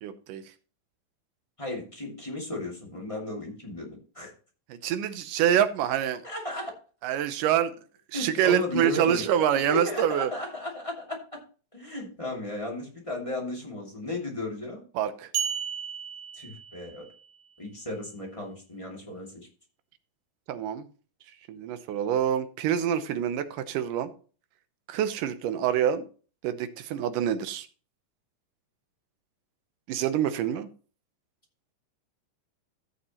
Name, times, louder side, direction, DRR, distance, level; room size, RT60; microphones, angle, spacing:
voice 1, 0.0-0.4 4.7-6.2 7.0-7.8 8.1-10.3 15.0-15.3 20.5-20.9 21.5-24.1 24.9-26.1 26.4-27.7 29.9-30.7, right 10 dB, 80° right, 11 dB, 2.4 m, -26 dB
voice 2, 1.6-4.3 6.2-6.7 8.1-9.2 9.7-11.4 11.7-14.8 16.3-17.1 17.6-19.5, left 1 dB, 10° left, -2 dB, 2.1 m, -34 dB
sound 1, 15.3-17.2, right 8 dB, 60° right, 2.3 m, -33 dB
15.5 x 6.7 x 3.0 m, 0.38 s
omnidirectional pair, 3.8 m